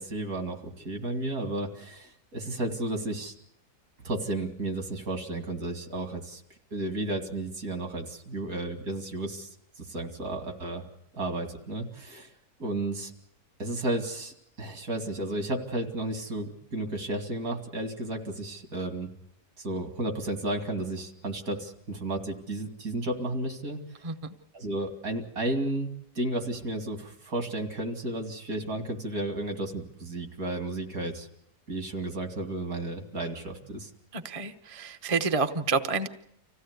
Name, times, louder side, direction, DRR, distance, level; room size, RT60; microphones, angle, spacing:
voice 1, 0.0-3.3 4.0-6.4 6.7-10.9 11.1-12.3 12.6-13.1 13.6-19.1 19.6-24.0 24.5-25.9 26.1-31.3 31.7-33.9, right 2 dB, 60° right, 5 dB, 2.9 m, -33 dB
voice 2, 34.1-36.1, right 4 dB, 25° right, 7 dB, 0.9 m, -28 dB
26.0 x 16.0 x 8.2 m, 0.76 s
omnidirectional pair, 1.7 m